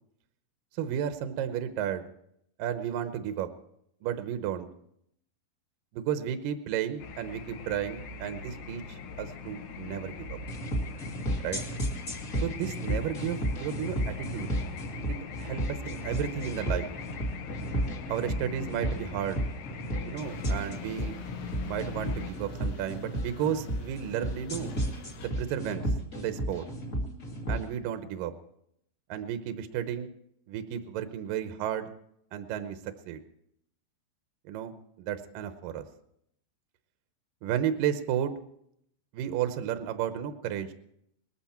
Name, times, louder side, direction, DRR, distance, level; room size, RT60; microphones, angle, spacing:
voice 1, 0.8-2.1 2.6-3.5 4.0-4.7 5.9-10.4 11.4-11.6 12.4-14.5 15.1-16.9 18.1-19.4 20.0-21.2 21.6-24.7 25.2-25.9 26.2-26.7 27.5-28.3 29.1-30.1 30.5-31.9 32.3-32.8 33.1-33.2 34.5-35.8 37.4-38.3 39.1-40.7, right 9 dB, 85° right, 9 dB, 2.0 m, -33 dB
sound 1, 7.0-22.3, left 5 dB, 70° left, 3.2 m, -41 dB
sound 2, 10.5-27.6, equal, 45° left, 1.0 m, -33 dB
sound 3, 20.2-25.3, left 3 dB, 90° left, 4.1 m, -48 dB
19.5 x 14.0 x 4.4 m, 0.74 s
omnidirectional pair, 5.2 m